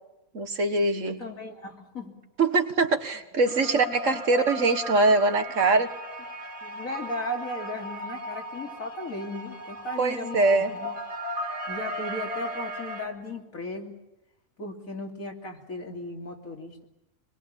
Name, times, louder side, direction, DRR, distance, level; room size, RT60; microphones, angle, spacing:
voice 1, 0.3-1.2 2.4-5.9 10.0-10.7, right 3 dB, 65° right, 8 dB, 2.0 m, -23 dB
voice 2, 1.0-2.1 6.6-11.0 11.7-14.0 14.6-16.9, left 1 dB, 85° left, 2 dB, 3.4 m, -36 dB
sound 1, 3.4-13.1, equal, 30° right, 5.5 m, -36 dB
25.0 x 21.0 x 8.9 m, 0.93 s
omnidirectional pair, 1.4 m